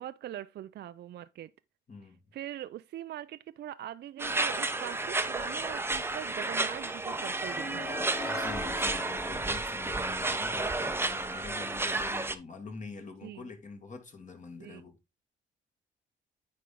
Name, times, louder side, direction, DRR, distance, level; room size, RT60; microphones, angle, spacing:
voice 1, 0.0-1.5 2.3-7.9 13.2-13.5 14.6-14.8, right 12 dB, 60° right, 0.4 m, -42 dB
voice 2, 1.9-2.2 8.3-15.0, left 4 dB, 40° left, 2.1 m, -45 dB
sound 1, 4.2-12.4, right 2 dB, 10° right, 0.7 m, -32 dB
sound 2, 7.6-10.4, left 1 dB, 15° left, 2.2 m, -41 dB
9.4 x 4.4 x 3.7 m
cardioid pair, 90°, 20 cm